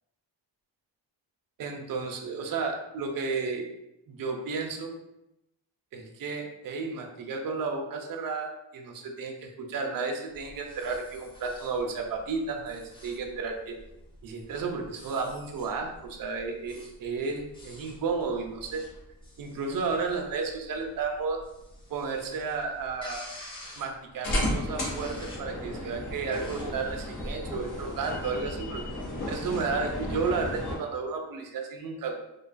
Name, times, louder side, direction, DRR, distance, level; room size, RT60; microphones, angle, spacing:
voice 1, 1.6-3.7 4.1-4.9 5.9-13.8 14.2-18.9 19.4-21.4 21.9-23.2 23.8-28.8 29.3-32.2, right 4 dB, 50° right, 2 dB, 0.5 m, -32 dB
sound 1, 10.3-27.2, equal, 10° left, 0.6 m, -50 dB
sound 2, 24.2-30.8, left 1 dB, 60° left, 0.8 m, -33 dB
2.5 x 2.2 x 2.4 m, 0.87 s
wide cardioid pair, 105°, 44 cm